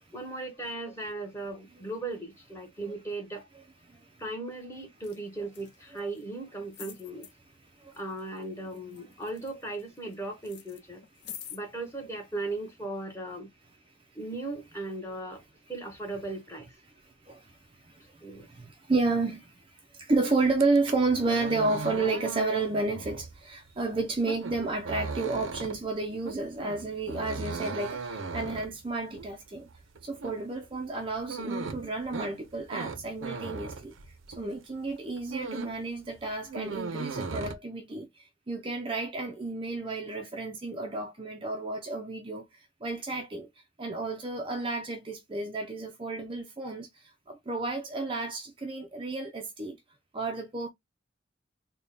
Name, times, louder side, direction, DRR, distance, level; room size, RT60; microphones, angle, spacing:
voice 1, 0.1-3.4 4.2-7.3 8.0-11.0 11.5-13.5 14.1-15.4 15.7-16.7 18.2-18.5, right 2 dB, 15° left, 1.0 m, -37 dB
voice 2, 3.5-4.2 5.9-6.1 7.6-8.0 9.0-9.1 11.3-11.5 17.0-29.7 30.0-33.9 34.3-43.5 43.8-49.8 50.1-50.7, right 3 dB, 25° right, 0.4 m, -32 dB
sound 1, 5.0-5.2 5.5-6.2 6.7-7.3 7.9-8.4 8.7-10.1 10.4-11.6 12.4-12.5, left 10 dB, 55° left, 0.5 m, -46 dB
sound 2, 20.5-34.5 34.9-35.9 36.1-37.5, right 4 dB, 80° right, 0.6 m, -38 dB
3.4 x 2.2 x 3.9 m
head